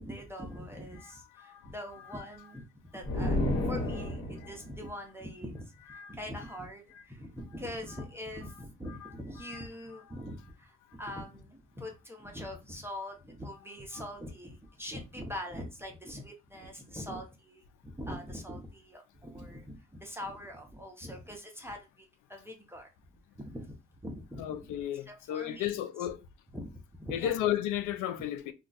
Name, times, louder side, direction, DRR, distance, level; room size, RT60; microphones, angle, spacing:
voice 1, 0.0-22.9 23.3-23.7 24.0-24.7 24.9-26.1 26.5-27.4, equal, 10° right, 0.7 m, -43 dB
sound 1, 3.0-4.6, left 1 dB, 50° left, 1.3 m, -30 dB
voice 2, 24.4-26.2 27.1-28.5, left 11 dB, 85° left, 0.5 m, -33 dB
2.3 x 2.3 x 3.9 m
cardioid pair, 90°, 30 cm